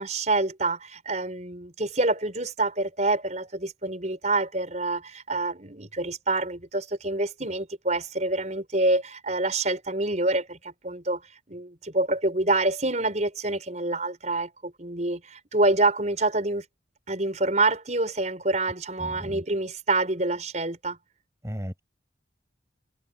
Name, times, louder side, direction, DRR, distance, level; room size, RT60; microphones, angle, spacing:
voice 1, 0.0-11.2 11.5-16.6 17.1-21.0, right 2 dB, 40° right, 5.3 m, -27 dB
voice 2, 19.0-19.4 21.4-21.8, equal, 15° right, 4.8 m, -35 dB
head